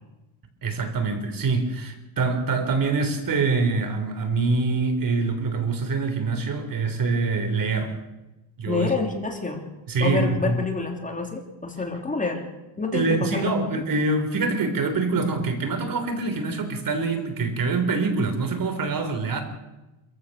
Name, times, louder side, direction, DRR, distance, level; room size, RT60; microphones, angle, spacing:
voice 1, 0.6-8.0 8.6-8.9 9.9-10.6 12.9-19.4, right 3 dB, 45° right, 8 dB, 3.6 m, -25 dB
voice 2, 8.7-9.6 10.0-12.4 12.8-13.8, left 4 dB, 15° left, 3 dB, 3.2 m, -28 dB
26.5 x 15.0 x 6.7 m, 1.0 s
cardioid pair, 120°, 47 cm